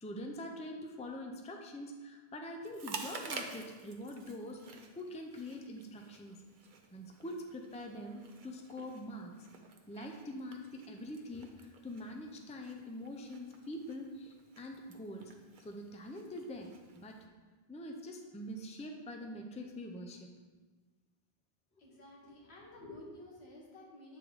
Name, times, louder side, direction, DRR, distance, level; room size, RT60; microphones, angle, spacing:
voice 1, 0.0-6.4 6.9-9.5 9.9-15.3 15.6-17.3 17.7-20.3 21.9-22.0, left 1 dB, 10° left, 3 dB, 0.4 m, -44 dB
Chewing mastication, 2.6-17.2, right 4 dB, 55° right, 0.8 m, -51 dB
voice 2, 21.8-24.2, left 1 dB, 85° left, -2 dB, 1.7 m, -52 dB
8.7 x 3.7 x 4.7 m, 1.4 s
omnidirectional pair, 1.0 m